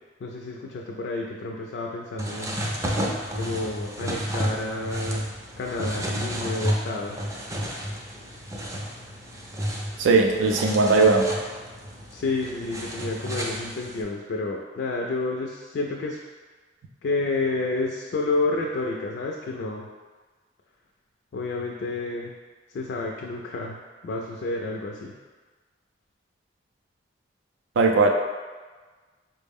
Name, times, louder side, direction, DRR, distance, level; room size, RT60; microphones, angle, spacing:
voice 1, 0.2-2.7 3.3-5.3 5.6-7.3 12.1-16.2 17.0-19.9 21.3-22.3 22.7-23.8 24.0-25.1, left 3 dB, 60° left, 0 dB, 0.3 m, -30 dB
sound 1, 2.2-14.0, equal, 15° right, 0.4 m, -31 dB
voice 2, 10.0-11.3 27.8-28.1, right 3 dB, 85° right, 3 dB, 0.4 m, -18 dB
4.3 x 2.0 x 3.5 m, 1.4 s
head